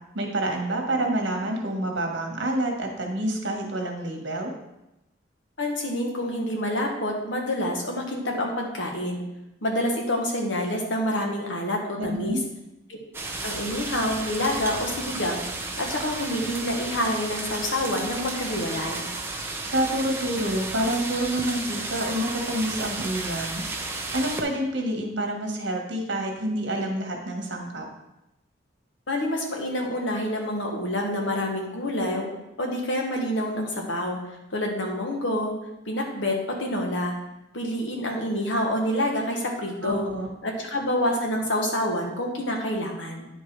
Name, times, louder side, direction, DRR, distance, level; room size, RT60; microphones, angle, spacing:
voice 1, 0.1-4.5 12.0-12.4 19.6-23.6 24.1-27.8 39.8-40.3, right 1 dB, 70° right, 2 dB, 1.5 m, -28 dB
voice 2, 5.6-9.2 9.6-12.4 12.9-13.0 13.4-15.4 15.8-19.1 29.1-32.3 32.6-34.2 34.5-35.5 35.8-37.1 37.5-40.1 40.4-43.3, left 1 dB, 75° left, 1 dB, 1.6 m, -27 dB
sound 1, 13.1-24.4, right 3 dB, 10° right, 0.7 m, -33 dB
9.7 x 4.7 x 4.7 m, 0.91 s
head